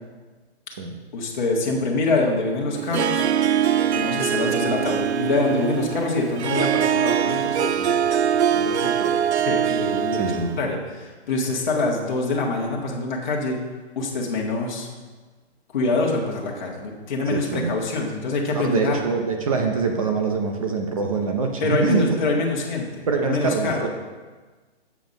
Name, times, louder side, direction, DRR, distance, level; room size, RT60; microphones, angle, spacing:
voice 1, 1.1-3.3 3.9-13.6 13.9-14.9 15.7-19.0 21.6-23.9, left 3 dB, 45° left, -2 dB, 1.5 m, -25 dB
Harp, 2.7-10.6, right 9 dB, 80° right, 0.5 m, -23 dB
voice 2, 10.2-10.5 17.3-17.7 18.5-22.1 23.1-23.9, right 4 dB, 35° right, 4 dB, 0.7 m, -24 dB
7.3 x 5.7 x 5.3 m, 1.3 s
hypercardioid pair, 165°, 33 cm